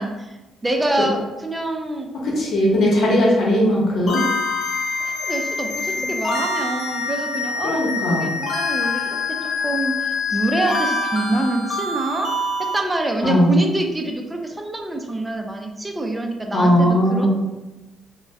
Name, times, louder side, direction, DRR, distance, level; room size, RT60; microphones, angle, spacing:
voice 1, 0.0-2.1 5.0-7.8 8.1-9.4 9.6-12.5 12.7-17.3, right 1 dB, 15° right, 3 dB, 0.4 m, -26 dB
voice 2, 2.2-4.2 7.6-8.3 13.2-13.6 16.5-17.3, equal, 65° left, -3 dB, 0.9 m, -18 dB
sound 1, 4.1-12.8, left 3 dB, 50° left, 0.5 m, -25 dB
2.5 x 2.1 x 3.3 m, 1.1 s
cardioid pair, 90°, 0 cm